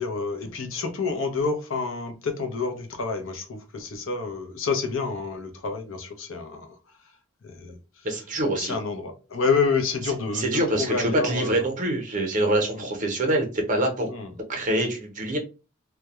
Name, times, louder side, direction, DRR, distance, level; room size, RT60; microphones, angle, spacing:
voice 1, 0.0-6.8 7.4-11.6 12.7-12.9 14.1-14.4, left 4 dB, 65° left, 0.6 m, -29 dB
voice 2, 8.0-8.8 10.3-14.1 14.5-15.4, right 1 dB, 35° right, 0.7 m, -25 dB
2.2 x 2.1 x 2.9 m
head